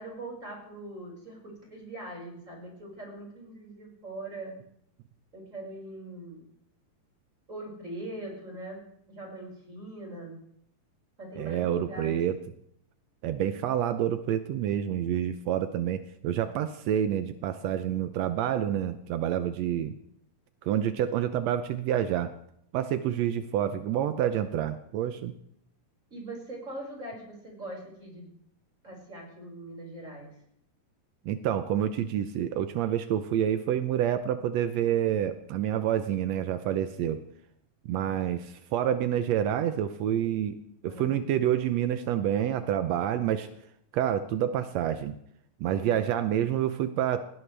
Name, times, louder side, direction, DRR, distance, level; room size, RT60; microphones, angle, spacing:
voice 1, 0.0-4.5 5.3-6.4 7.5-8.8 9.1-10.4 11.2-12.2 26.1-28.3 28.8-30.3 40.9-41.1 45.7-45.9, right 1 dB, 20° right, -2 dB, 5.7 m, -41 dB
voice 2, 11.4-12.4 13.2-19.9 20.6-22.3 22.7-25.3 31.2-37.2 37.9-40.6 40.8-43.5 43.9-45.1 45.6-47.2, right 10 dB, 85° right, 10 dB, 1.5 m, -28 dB
19.5 x 18.5 x 3.4 m, 0.73 s
omnidirectional pair, 4.0 m